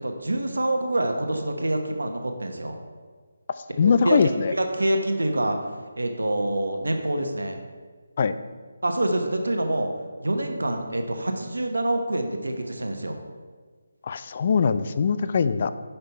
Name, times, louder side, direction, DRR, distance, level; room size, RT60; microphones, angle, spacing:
voice 1, 0.0-2.8 3.8-4.2 4.5-5.6 6.0-7.6 8.8-9.9 10.2-13.2, right 1 dB, 85° right, 5 dB, 0.9 m, -26 dB
voice 2, 3.8-4.5 8.2-8.3 14.0-15.7, left 5 dB, 40° left, 12 dB, 0.3 m, -21 dB
5.6 x 5.5 x 4.5 m, 1.5 s
figure-of-eight pair, 160°, 0 cm